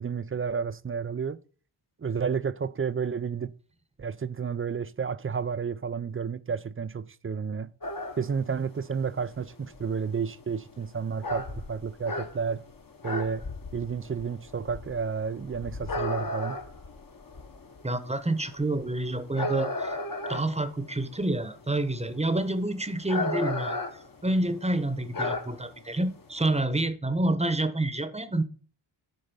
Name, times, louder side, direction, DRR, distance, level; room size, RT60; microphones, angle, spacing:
voice 1, 0.0-1.4 2.0-3.5 4.0-7.7 8.2-12.6 13.0-13.5 13.7-16.6, right 6 dB, 30° right, 0.4 m, -31 dB
sound 1, 7.8-26.6, left 2 dB, 45° left, 1.2 m, -36 dB
voice 2, 17.8-20.0 20.3-23.8 24.2-28.4, right 2 dB, 15° right, 1.0 m, -28 dB
10.5 x 3.9 x 5.5 m
cardioid pair, 65°, 49 cm